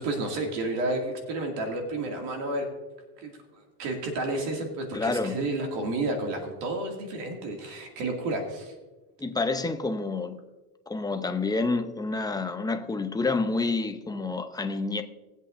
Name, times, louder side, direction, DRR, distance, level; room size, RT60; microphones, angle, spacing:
voice 1, 0.0-2.7 3.2-3.3 3.8-8.7, right 2 dB, 70° right, 2.3 m, -31 dB
voice 2, 4.9-5.4 9.2-10.4 10.9-15.0, left 3 dB, 10° left, 0.6 m, -28 dB
19.0 x 8.2 x 2.6 m
supercardioid pair, 120°, 44 cm